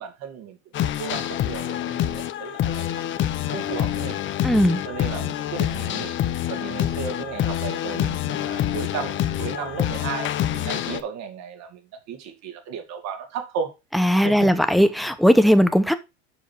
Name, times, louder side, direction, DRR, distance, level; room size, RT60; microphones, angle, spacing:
voice 1, 0.0-4.2 4.8-6.2 6.5-11.8 12.1-13.7 14.1-14.5, right 6 dB, 55° right, 2.5 m, -34 dB
sound 1, 0.7-11.0, left 12 dB, 35° left, 0.8 m, -26 dB
voice 2, 4.4-4.8 13.9-15.9, equal, ahead, 0.7 m, -18 dB
7.2 x 5.6 x 4.5 m
supercardioid pair, 115°, 33 cm